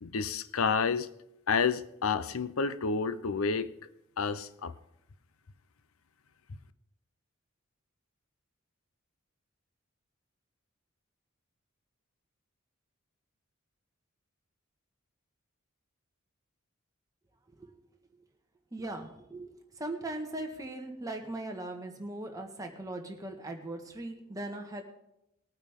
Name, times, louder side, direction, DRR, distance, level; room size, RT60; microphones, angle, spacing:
voice 1, 0.0-1.1 1.5-3.7 4.2-4.7, left 5 dB, 85° left, 13 dB, 0.6 m, -29 dB
voice 2, 18.7-24.8, right 2 dB, 15° right, 2 dB, 1.6 m, -39 dB
20.5 x 9.0 x 3.6 m, 0.84 s
head